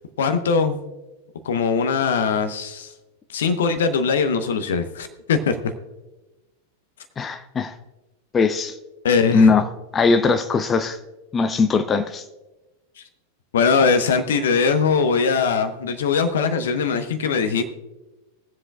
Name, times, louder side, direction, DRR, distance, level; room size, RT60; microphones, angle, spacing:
voice 1, 0.2-0.8 1.4-2.9 3.3-5.6 9.0-9.5 13.5-17.6, left 5 dB, 60° left, 9 dB, 1.0 m, -21 dB
voice 2, 7.2-7.7 8.3-8.8 9.3-9.6 9.9-11.0 11.3-12.2, left 4 dB, 20° left, 8 dB, 0.6 m, -19 dB
22.5 x 7.7 x 2.4 m, 1.1 s
figure-of-eight pair, 90°, 0 cm